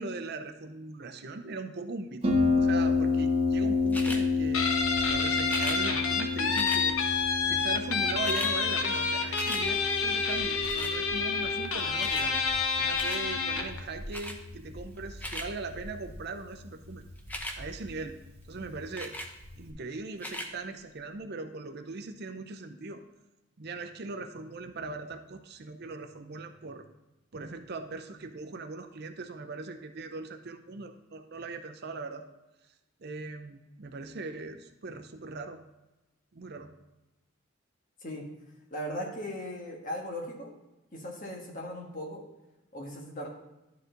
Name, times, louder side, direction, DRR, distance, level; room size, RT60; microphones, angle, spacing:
voice 1, 0.0-4.7 5.1-7.0 7.4-12.4 12.8-17.0 17.6-18.2 18.5-19.2 19.6-23.0 23.6-26.8 27.3-32.3 33.0-35.6 36.3-36.7, right 3 dB, 50° right, 7 dB, 0.6 m, -40 dB
Harp, 2.2-19.7, left 4 dB, 30° right, 1.3 m, -32 dB
sound 1, 3.9-4.2 5.4-5.8 6.5-6.8 7.8-7.9 8.1-8.5 8.9-9.6 10.6-11.0 12.0-12.3 12.9-13.2 14.1-14.4 15.0-15.5 17.2-17.6 19.0-19.3 20.1-20.5 21.2-21.3, left 1 dB, 10° left, 0.6 m, -38 dB
Guitar, 4.5-13.8, left 5 dB, 75° left, 0.9 m, -29 dB
voice 2, 38.7-40.5 40.9-42.2 42.7-43.3, equal, 40° left, -1 dB, 1.5 m, -38 dB
11.5 x 4.8 x 3.8 m, 1.0 s
head